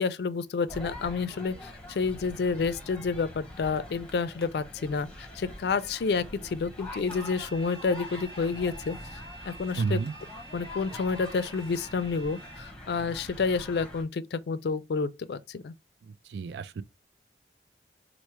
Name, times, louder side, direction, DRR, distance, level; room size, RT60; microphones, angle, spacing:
voice 1, 0.0-9.2 9.5-10.0 10.5-15.7, left 4 dB, 65° left, 0.4 m, -29 dB
sound 1, 0.7-14.0, left 1 dB, 5° left, 0.8 m, -44 dB
Bowed string instrument, 6.8-12.8, right 2 dB, 25° right, 0.7 m, -49 dB
voice 2, 9.8-10.1 16.1-16.8, right 4 dB, 70° right, 0.3 m, -31 dB
4.4 x 2.1 x 3.0 m
head